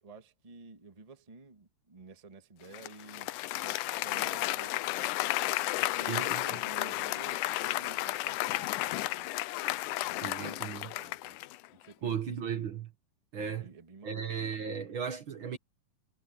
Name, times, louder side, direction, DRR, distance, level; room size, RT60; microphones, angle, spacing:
voice 1, 0.0-5.4 5.8-9.3 10.0-11.4 11.7-12.2 13.4-14.8, right 4 dB, 25° right, 0.7 m, -52 dB
Applause, 2.7-11.7, left 17 dB, 80° left, 2.0 m, -33 dB
voice 2, 6.1-6.6 10.2-10.9 12.0-12.9 13.3-13.7 14.0-15.6, right 7 dB, 55° right, 1.5 m, -36 dB
omnidirectional pair, 4.1 m